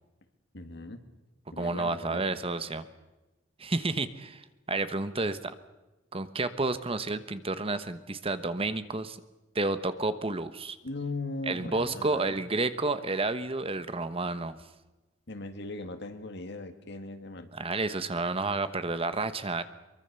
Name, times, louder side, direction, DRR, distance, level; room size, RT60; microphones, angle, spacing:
voice 1, 0.5-1.0 1.5-2.2 10.8-12.4 15.3-17.5, left 2 dB, 60° left, 8 dB, 2.2 m, -38 dB
voice 2, 1.6-2.9 3.6-5.5 6.1-9.2 9.5-10.8 11.5-14.6 17.5-19.6, right 3 dB, 30° right, 12 dB, 1.1 m, -30 dB
24.5 x 23.0 x 6.9 m, 1.1 s
head